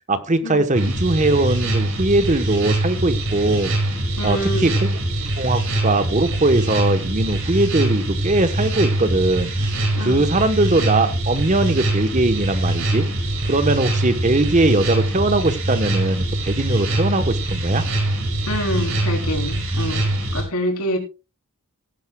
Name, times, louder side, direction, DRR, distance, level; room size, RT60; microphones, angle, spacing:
voice 1, 0.1-3.7 4.2-5.0 5.4-9.7 10.0-13.1 13.4-17.9, right 2 dB, 35° right, 1.0 m, -20 dB
sound 1, 0.7-20.4, right 1 dB, 70° right, 5.1 m, -23 dB
voice 2, 4.2-4.7 10.0-10.3 18.5-21.0, equal, 85° left, 3.4 m, -26 dB
18.0 x 10.5 x 2.2 m
head